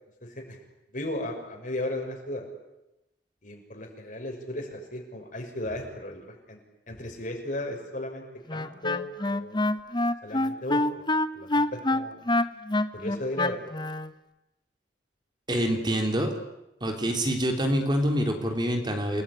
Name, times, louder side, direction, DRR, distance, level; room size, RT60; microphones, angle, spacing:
voice 1, 0.2-0.6 0.9-2.4 3.4-6.6 6.9-8.2 8.5-9.6 10.2-10.8 11.3-12.2 12.9-13.6, left 1 dB, 50° left, 2 dB, 6.7 m, -35 dB
Wind instrument woodwind instrument, 8.5-14.1, left 2 dB, 25° left, 1.1 m, -26 dB
voice 2, 15.5-16.3 16.8-19.2, equal, 25° right, 4 dB, 3.4 m, -26 dB
29.0 x 20.0 x 10.0 m, 0.93 s
head